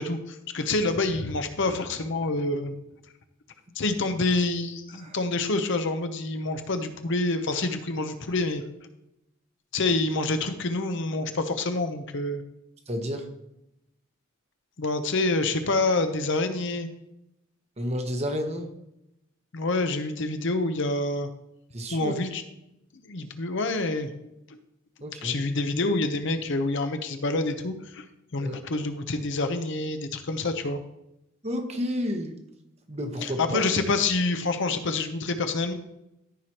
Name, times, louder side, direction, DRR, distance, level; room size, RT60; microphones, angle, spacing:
voice 1, 0.0-2.8 3.8-8.6 9.7-12.4 14.8-16.9 19.5-21.3 21.9-22.4 23.0-24.1 25.2-28.1 28.3-30.8 33.2-35.7, left 2 dB, 60° left, 8 dB, 0.8 m, -27 dB
voice 2, 12.9-13.3 17.8-18.7 21.7-22.1 25.0-25.4 28.4-28.6 31.4-32.4 32.9-33.6, equal, 30° right, 4 dB, 1.0 m, -31 dB
14.0 x 4.9 x 2.9 m, 0.85 s
head